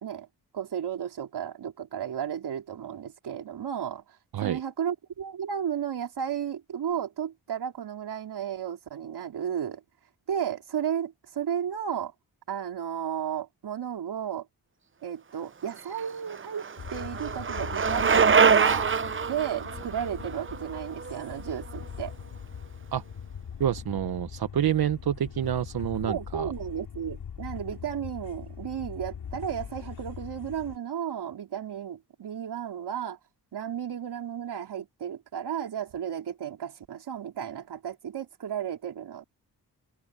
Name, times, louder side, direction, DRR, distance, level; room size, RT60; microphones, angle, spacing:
voice 1, 0.5-4.0 4.4-9.8 10.3-12.1 12.5-14.5 15.0-16.6 16.9-18.9 19.3-22.1 26.0-33.2 33.5-39.2, right 9 dB, 85° right, 4.2 m, -33 dB
Bicycle, 15.8-21.8, right 6 dB, 30° right, 0.7 m, -25 dB
sound 1, 16.8-30.8, left 7 dB, 80° left, 5.0 m, -41 dB
voice 2, 23.6-26.5, right 10 dB, 70° right, 1.0 m, -28 dB
open air
cardioid pair, 80°, 39 cm